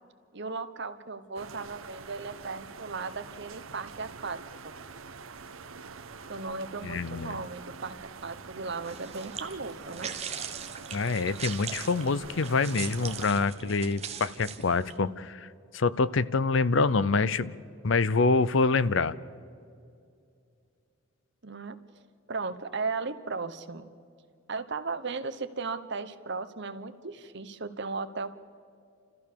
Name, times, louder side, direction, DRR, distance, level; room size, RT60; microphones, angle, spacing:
voice 1, 0.3-4.4 4.6-4.7 6.3-8.0 8.2-10.1 21.4-21.8 22.3-23.9 24.5-28.3, right 4 dB, 55° right, 10 dB, 1.1 m, -36 dB
sound 1, 1.4-13.3, right 5 dB, 85° right, 1.0 m, -46 dB
voice 2, 6.8-7.4 10.9-15.5 15.7-17.5 17.8-19.1, left 4 dB, 65° left, 16 dB, 0.6 m, -26 dB
sound 2, 8.8-15.0, right 7 dB, 30° right, 1.2 m, -40 dB
29.5 x 14.5 x 6.9 m, 2.4 s
head